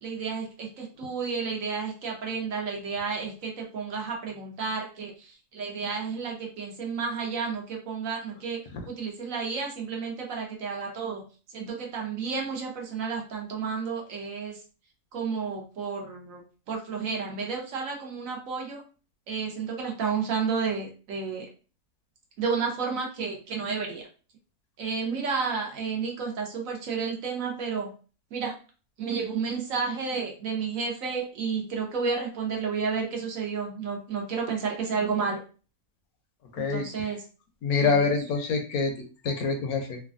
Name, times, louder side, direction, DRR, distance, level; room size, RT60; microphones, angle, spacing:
voice 1, 0.0-11.2 11.5-14.6 15.1-16.4 16.7-18.8 19.3-21.5 22.4-24.1 24.8-27.9 28.3-28.5 29.0-35.4 36.6-37.2 37.8-38.1, right 5 dB, 65° right, 0 dB, 1.0 m, -31 dB
voice 2, 36.5-37.1 37.6-40.0, left 4 dB, 75° left, 4 dB, 1.1 m, -26 dB
3.2 x 2.2 x 2.4 m, 0.36 s
omnidirectional pair, 1.6 m